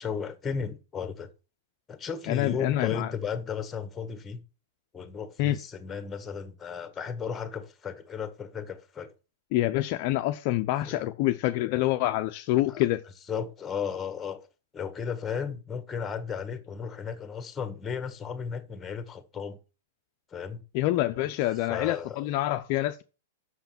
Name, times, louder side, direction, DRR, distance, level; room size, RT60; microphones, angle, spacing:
voice 1, 0.0-1.3 1.9-4.4 4.9-9.1 10.8-11.1 12.7-12.8 13.3-14.5 14.7-19.6 20.3-20.6 21.7-22.3, left 6 dB, 15° left, 1.5 m, -34 dB
voice 2, 2.3-3.1 5.4-5.6 9.5-13.0 20.7-23.0, left 15 dB, 50° left, 0.6 m, -26 dB
6.5 x 5.7 x 7.0 m
hypercardioid pair, 125°, 0 cm